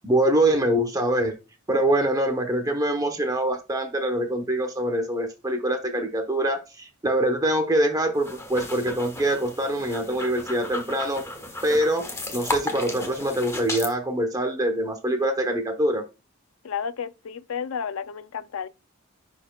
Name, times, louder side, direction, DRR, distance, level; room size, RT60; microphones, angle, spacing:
voice 1, 0.0-1.3 1.7-11.2 11.6-12.0 12.3-16.0, right 1 dB, 15° right, 0.9 m, -24 dB
sound 1, 8.1-13.9, left 2 dB, 15° left, 1.3 m, -34 dB
voice 2, 16.6-18.7, left 7 dB, 70° left, 0.5 m, -32 dB
10.5 x 4.4 x 2.3 m
head